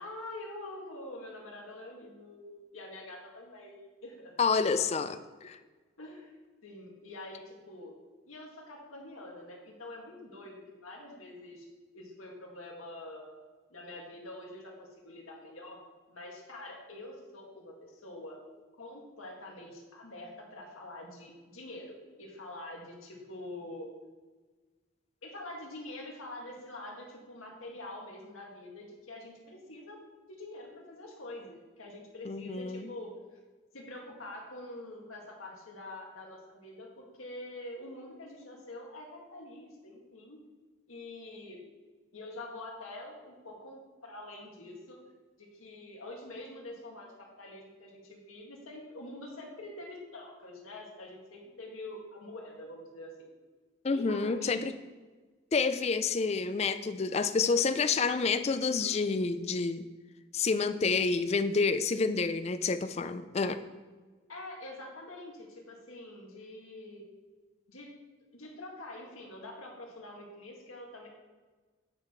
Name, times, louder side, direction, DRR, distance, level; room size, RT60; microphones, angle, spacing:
voice 1, 0.0-4.3 6.0-6.3 6.6-7.9 8.3-11.7 11.9-13.3 13.7-15.8 16.1-18.4 18.8-23.9 25.2-30.0 30.3-33.4 33.7-40.4 40.9-41.6 42.1-45.0 45.4-53.3 53.9-54.7 64.3-67.1 67.7-67.9 68.3-71.1, left 1 dB, 85° left, -1 dB, 1.9 m, -45 dB
voice 2, 4.4-5.6 32.3-32.9 53.8-54.7 55.5-59.9 60.3-63.6, left 4 dB, 30° left, 12 dB, 0.3 m, -29 dB
8.8 x 5.8 x 4.5 m, 1.3 s
head